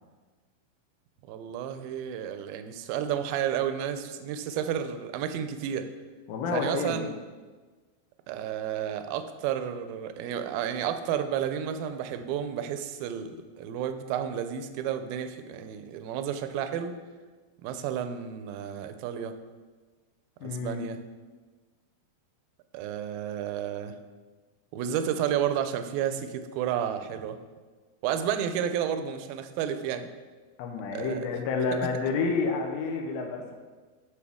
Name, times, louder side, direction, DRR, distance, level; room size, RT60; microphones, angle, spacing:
voice 1, 1.3-5.9 6.5-7.1 8.3-16.9 17.6-19.3 20.4-21.0 22.7-24.0 24.7-27.4 28.0-30.1 30.9-31.3, right 9 dB, 80° right, 8 dB, 2.3 m, -31 dB
voice 2, 6.3-7.1 20.4-20.8 30.6-33.5, left 4 dB, 75° left, 1 dB, 2.6 m, -29 dB
13.5 x 4.6 x 3.6 m, 1.4 s
omnidirectional pair, 4.4 m